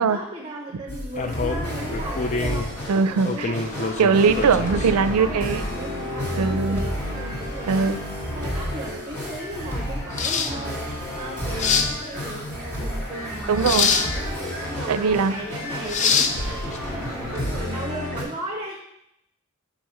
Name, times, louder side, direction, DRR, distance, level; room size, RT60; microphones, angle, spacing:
voice 1, 0.0-7.9 8.1-18.7, right 1 dB, 25° right, -1 dB, 0.8 m, -36 dB
sound 1, 0.9-18.2, equal, 10° left, 1.4 m, -31 dB
sound 2, 1.1-17.3, left 5 dB, 30° left, 0.4 m, -28 dB
voice 2, 2.9-3.5 4.0-5.6 6.4-6.8 7.7-8.0 13.5-13.9 14.9-15.3, right 5 dB, 85° right, 13 dB, 0.4 m, -20 dB
5.3 x 4.7 x 5.6 m, 0.79 s
head